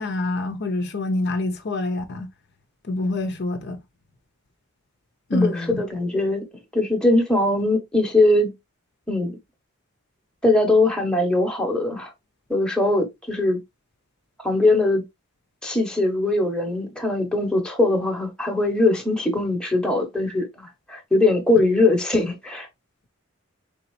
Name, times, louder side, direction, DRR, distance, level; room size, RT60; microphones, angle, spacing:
voice 1, 0.0-2.3 2.8-3.8 5.3-5.8, left 2 dB, 50° left, 0.6 m, -26 dB
voice 2, 5.3-6.5 6.7-8.5 9.1-9.4 10.4-12.1 12.5-13.6 14.4-15.0 15.6-22.7, left 2 dB, 5° left, 0.9 m, -21 dB
3.9 x 3.5 x 3.0 m
head